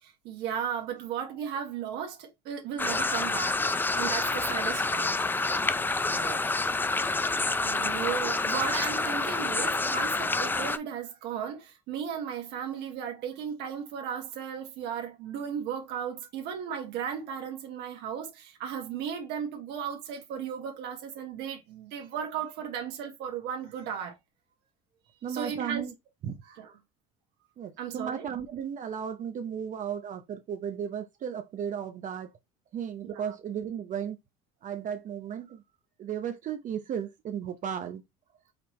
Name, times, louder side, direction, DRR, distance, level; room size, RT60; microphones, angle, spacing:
voice 1, 0.0-3.6 3.9-5.2 7.6-24.2 25.3-25.9 26.5-26.7 27.8-28.3 33.1-33.3, right 8 dB, 70° right, 1.6 m, -35 dB
sound 1, 2.8-10.8, left 3 dB, 10° left, 0.4 m, -28 dB
voice 2, 6.1-6.5 25.2-25.9 26.2-26.4 27.6-32.4 32.7-34.2 34.6-35.6 36.0-38.0, right 8 dB, 45° right, 0.7 m, -35 dB
4.9 x 3.4 x 3.1 m
supercardioid pair, 90°, 18 cm